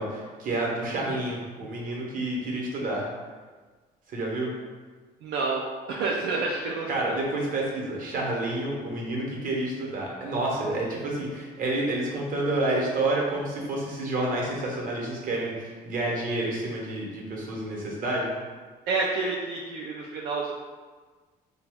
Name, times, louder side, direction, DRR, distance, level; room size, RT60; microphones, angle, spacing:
voice 1, 0.0-3.1 4.1-4.5 6.9-18.3, right 2 dB, 55° right, -2 dB, 0.9 m, -29 dB
voice 2, 5.2-5.6 5.9-7.2 18.9-20.5, right 3 dB, 85° right, -2 dB, 0.4 m, -29 dB
2.9 x 2.2 x 3.4 m, 1.4 s
cardioid pair, 110°, 17 cm